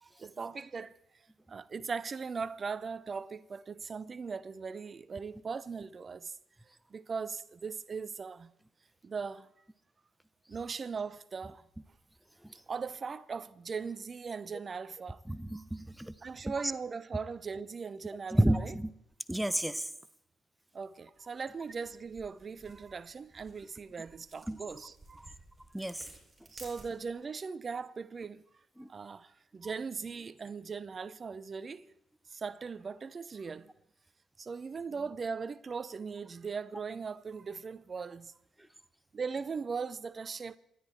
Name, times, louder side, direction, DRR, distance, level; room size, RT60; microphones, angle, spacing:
voice 1, 0.0-0.9 1.5-6.4 6.9-8.5 9.0-9.5 10.5-11.6 12.7-15.2 16.2-18.8 20.7-25.2 26.5-28.4 28.9-31.8 32.3-33.7 34.4-38.3 39.1-40.6, right 5 dB, 45° right, 0.7 m, -39 dB
voice 2, 15.3-16.1 18.3-18.9 19.3-19.9 24.5-24.6 25.7-26.1 28.8-28.9, right 1 dB, 5° right, 1.0 m, -30 dB
sound 1, 21.1-27.3, right 2 dB, 25° right, 7.3 m, -56 dB
28.5 x 11.0 x 4.4 m
hypercardioid pair, 40°, 0 cm